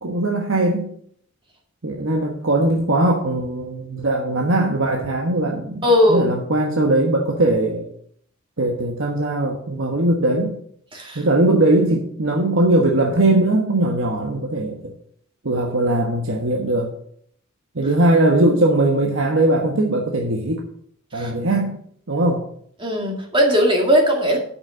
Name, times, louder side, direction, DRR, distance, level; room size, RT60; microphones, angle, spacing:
voice 1, 0.0-0.9 1.8-7.9 8.6-10.5 11.1-14.9 15.4-16.9 17.7-20.6 21.1-21.8 22.1-22.4, right 1 dB, 65° right, 1 dB, 1.3 m, -20 dB
voice 2, 5.8-6.3 10.9-11.2 21.1-21.3 22.8-24.4, equal, 25° right, 1 dB, 2.2 m, -18 dB
8.2 x 6.1 x 6.3 m, 0.63 s
head